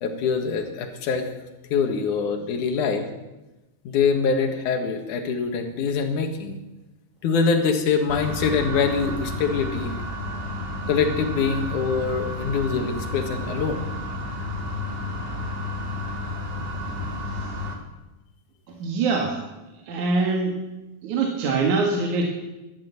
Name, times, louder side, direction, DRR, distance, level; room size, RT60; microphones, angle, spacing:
voice 1, 0.0-1.3 1.7-3.1 3.8-6.6 7.2-9.9 10.9-13.8, left 5 dB, 70° left, 5 dB, 3.0 m, -24 dB
sound 1, 8.1-17.8, left 2 dB, 25° right, 1.3 m, -31 dB
voice 2, 18.7-19.4 19.8-20.6 21.0-22.2, right 3 dB, 65° right, 1 dB, 3.0 m, -24 dB
13.5 x 12.0 x 8.3 m, 1.0 s
omnidirectional pair, 3.7 m